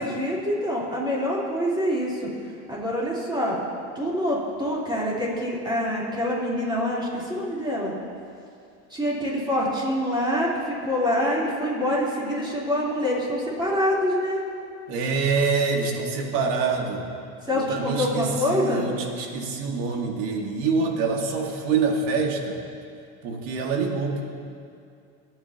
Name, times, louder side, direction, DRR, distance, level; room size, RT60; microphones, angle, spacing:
voice 1, 0.0-2.2 2.7-3.6 4.0-7.9 8.9-14.4 17.5-18.9, equal, 10° right, -6 dB, 3.7 m, -25 dB
voice 2, 14.9-17.1 17.5-22.6 23.2-24.2, right 4 dB, 65° right, 1 dB, 2.2 m, -25 dB
26.0 x 9.0 x 3.0 m, 2.4 s
supercardioid pair, 115°, 43 cm